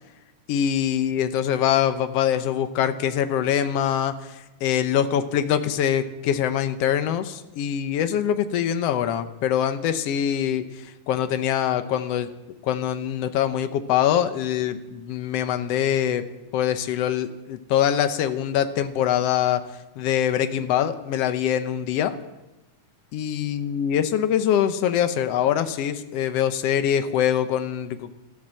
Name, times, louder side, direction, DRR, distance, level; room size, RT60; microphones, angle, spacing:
voice 1, 0.5-10.6 11.1-12.3 12.6-16.2 16.5-19.6 20.0-22.2 23.1-28.2, left 10 dB, 75° left, 10 dB, 1.4 m, -24 dB
13.5 x 13.0 x 7.6 m, 0.97 s
omnidirectional pair, 3.9 m